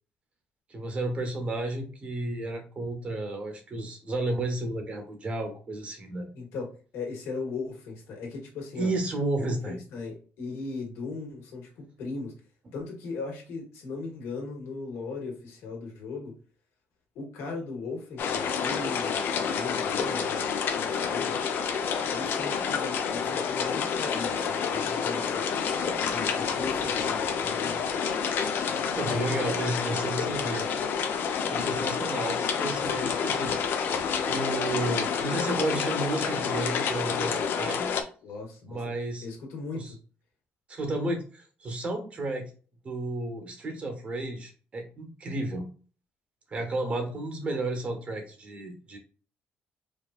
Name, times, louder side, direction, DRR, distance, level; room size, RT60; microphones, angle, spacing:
voice 1, 0.7-6.3 8.8-9.8 28.6-30.7 31.5-33.7 34.3-37.9 38.6-39.3 39.7-39.9 40.7-42.5 42.8-45.7 46.5-49.0, right 2 dB, 30° right, 5 dB, 1.0 m, -32 dB
voice 2, 6.3-6.7 6.9-8.9 9.7-12.3 12.7-16.3 17.2-21.4 22.1-25.4 26.0-28.0 38.2-38.8 39.2-40.0, left 4 dB, 80° left, 0 dB, 1.9 m, -38 dB
sound 1, 18.2-38.0, left 6 dB, 55° left, 0.6 m, -28 dB
5.0 x 2.9 x 2.4 m, 0.38 s
cardioid pair, 160°, 4 cm